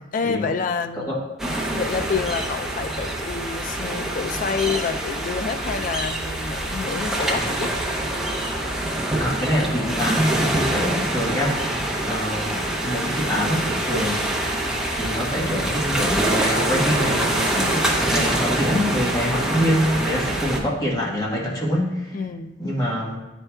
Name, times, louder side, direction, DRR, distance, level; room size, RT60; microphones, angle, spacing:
voice 1, 0.1-1.1 1.7-7.7 17.5-18.0 22.1-22.5, left 5 dB, 40° left, 8 dB, 0.3 m, -28 dB
sound 1, 1.4-20.6, right 1 dB, ahead, 0.7 m, -25 dB
voice 2, 9.2-11.8 12.0-14.2 14.9-22.2 22.6-23.2, equal, 20° left, -4 dB, 1.2 m, -25 dB
9.7 x 4.4 x 2.3 m, 1.1 s
head